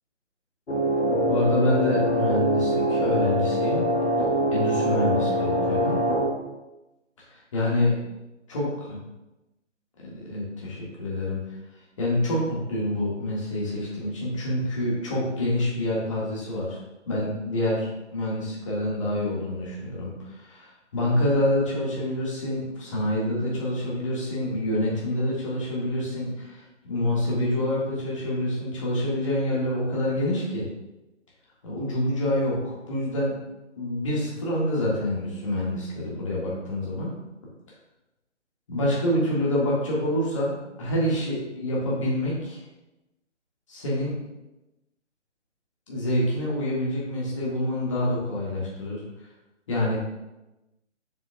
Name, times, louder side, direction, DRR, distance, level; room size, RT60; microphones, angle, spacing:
sound 1, 0.7-6.3, equal, 60° left, 1.3 m, -24 dB
voice 1, 1.3-3.8 4.5-5.9 7.3-7.9 8.5-8.7 10.0-11.4 12.0-16.8 17.0-30.7 31.6-33.3 33.7-37.1 38.7-42.6 43.7-44.2 45.9-49.0 49.7-50.0, left 1 dB, 25° left, -5 dB, 1.7 m, -27 dB
7.4 x 6.1 x 2.3 m, 0.99 s
figure-of-eight pair, 155°, 37 cm